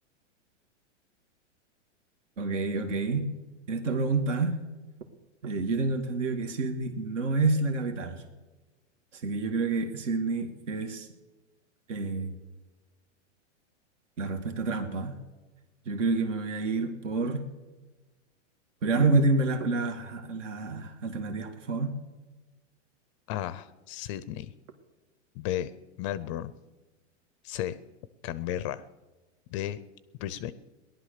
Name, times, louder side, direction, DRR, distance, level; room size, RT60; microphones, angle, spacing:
voice 1, 2.4-3.3 3.7-4.5 5.4-8.2 9.2-11.1 11.9-12.3 14.2-15.1 15.9-17.4 18.8-21.9, right 3 dB, 80° right, 6 dB, 2.3 m, -28 dB
voice 2, 23.3-24.5 25.3-25.7 26.0-26.5 27.4-27.8 28.2-28.8 29.5-29.8 30.2-30.5, left 12 dB, 30° left, 16 dB, 0.4 m, -33 dB
18.5 x 11.5 x 6.6 m, 1.2 s
supercardioid pair, 150°, 36 cm